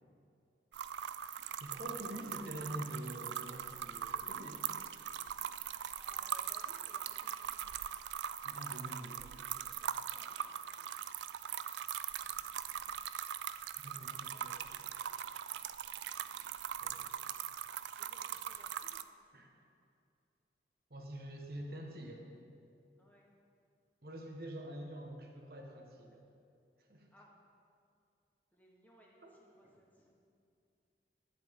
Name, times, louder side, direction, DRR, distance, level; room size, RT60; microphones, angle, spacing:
sound 1, 0.7-19.0, right 9 dB, 85° right, 0.3 m, -41 dB
voice 1, 1.6-4.7 8.4-9.3 13.8-14.7 16.8-17.1 19.3-19.5 20.9-22.3 24.0-26.3 26.9-27.1 29.2-29.3, right 1 dB, 60° right, 1 dB, 1.3 m, -46 dB
voice 2, 6.0-8.0 9.1-10.9 14.0-15.4 18.1-19.1 23.0-23.3 27.1-27.3 28.5-30.1, equal, 10° left, -3 dB, 1.1 m, -65 dB
11.5 x 10.0 x 3.7 m, 2.5 s
head